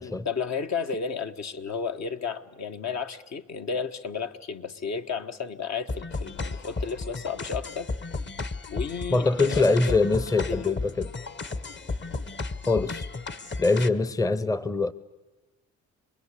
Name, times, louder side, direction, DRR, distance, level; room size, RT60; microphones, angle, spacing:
voice 1, 0.0-7.9 8.7-10.0 10.5-10.7, left 5 dB, 55° left, 1.4 m, -32 dB
sound 1, 5.9-13.9, left 3 dB, 35° left, 1.3 m, -34 dB
voice 2, 9.1-11.1 12.6-13.1 13.6-14.9, left 3 dB, 10° left, 0.8 m, -23 dB
27.0 x 21.0 x 8.3 m
cardioid pair, 80°, 32 cm